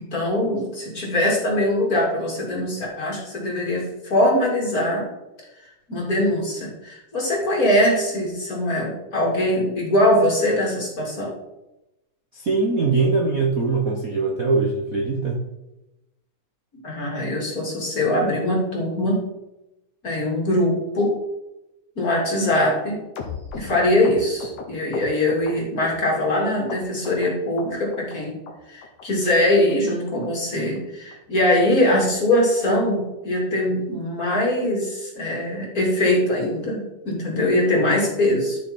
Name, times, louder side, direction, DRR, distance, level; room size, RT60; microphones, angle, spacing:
voice 1, 0.0-5.1 5.9-11.3 16.8-19.2 20.0-21.1 22.0-23.0 23.5-28.4 28.7-38.6, left 1 dB, 30° left, -3 dB, 2.9 m, -22 dB
voice 2, 12.3-15.4, right 4 dB, 80° right, -1 dB, 0.7 m, -22 dB
sound 1, 23.2-26.4 26.7-27.3 27.6-28.2 28.5-28.6 28.8-29.0 29.3-29.4 29.7-29.9 30.2-30.3 30.6-30.8 31.1-31.2 31.5-31.7 32.0-32.1 32.4-32.5 32.9-33.0, left 5 dB, 75° left, 2.9 m, -36 dB
13.5 x 6.3 x 4.4 m, 0.95 s
omnidirectional pair, 3.5 m